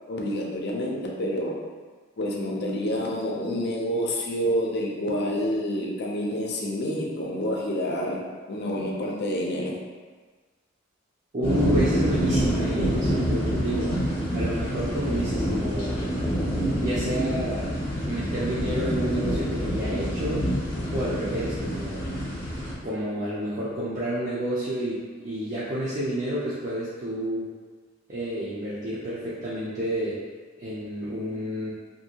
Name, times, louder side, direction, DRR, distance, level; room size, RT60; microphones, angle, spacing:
voice 1, 0.1-1.6 2.2-9.8, equal, 55° left, -1 dB, 0.5 m, -28 dB
voice 2, 11.3-13.9 14.3-16.3 16.8-17.7 18.1-20.5 20.9-22.0 22.8-27.5 28.1-30.2 30.6-31.7, right 1 dB, 40° right, -9 dB, 0.5 m, -30 dB
sound 1, 11.4-22.7, equal, 30° left, 0.8 m, -27 dB
2.7 x 2.6 x 2.8 m, 1.4 s
head